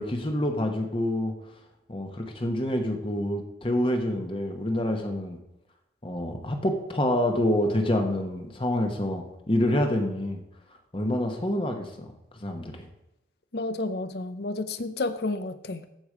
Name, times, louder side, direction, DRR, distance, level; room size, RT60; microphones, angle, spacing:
voice 1, 0.0-1.3 1.9-5.4 6.0-10.4 10.9-12.1 12.4-12.9, left 1 dB, 30° left, 4 dB, 1.1 m, -27 dB
voice 2, 13.5-15.9, left 2 dB, 65° left, 12 dB, 0.7 m, -31 dB
14.0 x 5.0 x 5.0 m, 0.88 s
head